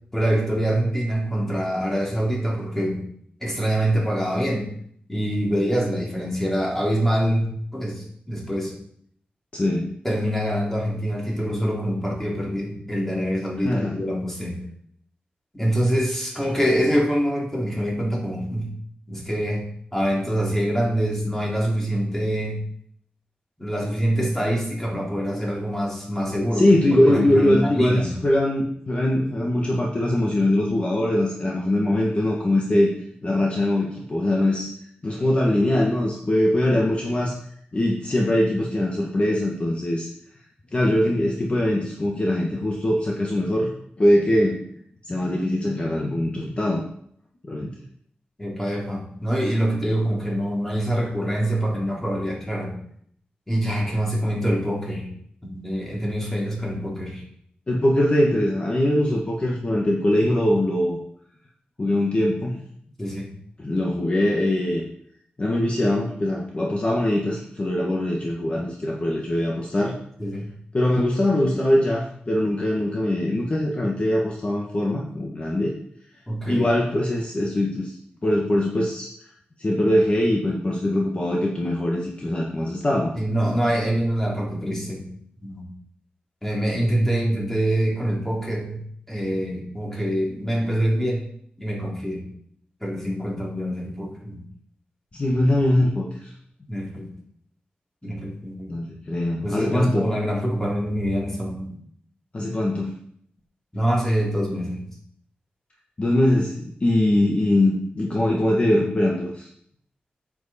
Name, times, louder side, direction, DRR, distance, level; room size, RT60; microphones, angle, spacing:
voice 1, 0.1-3.0 3.4-4.7 5.1-8.7 10.0-14.6 15.5-18.7 19.1-19.6 19.9-22.6 23.6-26.7 27.1-28.1 36.7-36.8 48.4-52.7 53.5-55.1 55.4-57.2 63.0-63.3 70.2-70.5 76.3-76.7 83.1-85.1 85.4-85.6 86.4-88.8 89.1-91.2 91.6-92.2 92.8-94.4 96.7-97.1 98.0-98.7 99.4-101.7 103.7-104.8, equal, 10° left, -3 dB, 3.1 m, -25 dB
voice 2, 9.5-9.9 13.6-14.0 26.5-32.9 33.2-34.7 35.0-37.4 37.7-40.1 40.7-43.7 44.0-44.6 45.0-46.8 47.5-47.7 57.7-61.0 61.8-62.6 63.6-64.8 65.4-70.0 70.7-75.7 76.4-77.9 78.2-79.1 79.6-83.1 95.1-96.3 98.7-100.1 102.3-102.9 106.0-109.5, left 1 dB, 35° left, -2 dB, 1.5 m, -22 dB
9.2 x 7.8 x 4.3 m, 0.65 s
wide cardioid pair, 95°, 4 cm